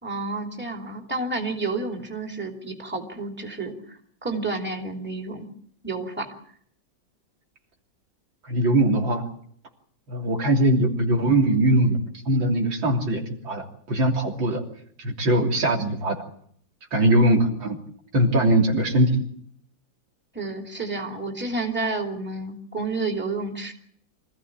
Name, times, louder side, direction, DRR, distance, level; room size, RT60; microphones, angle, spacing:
voice 1, 0.0-5.5 5.8-6.3 20.3-23.7, right 3 dB, 5° right, 3 dB, 2.8 m, -30 dB
voice 2, 8.4-9.2 10.1-12.0 12.3-14.6 15.0-16.2 16.9-17.8 18.1-19.1, right 1 dB, 80° right, 1 dB, 4.0 m, -21 dB
25.5 x 15.5 x 8.9 m, 0.63 s
omnidirectional pair, 2.1 m